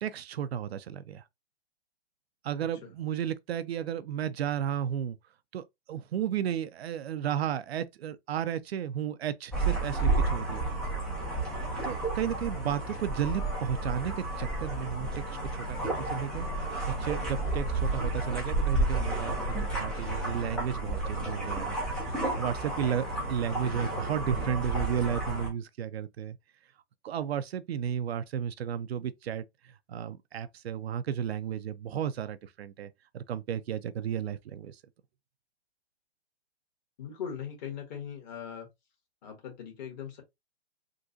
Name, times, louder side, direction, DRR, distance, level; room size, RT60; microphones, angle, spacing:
voice 1, 0.0-1.2 2.4-5.2 5.5-10.7 11.8-16.5 16.9-21.8 22.2-26.4 27.0-34.8, right 9 dB, 65° right, 0.5 m, -33 dB
sound 1, 9.5-25.5, right 2 dB, ahead, 0.3 m, -31 dB
voice 2, 37.0-38.7 39.2-40.2, left 8 dB, 40° left, 1.5 m, -39 dB
3.7 x 2.3 x 2.6 m
hypercardioid pair, 130°, 33 cm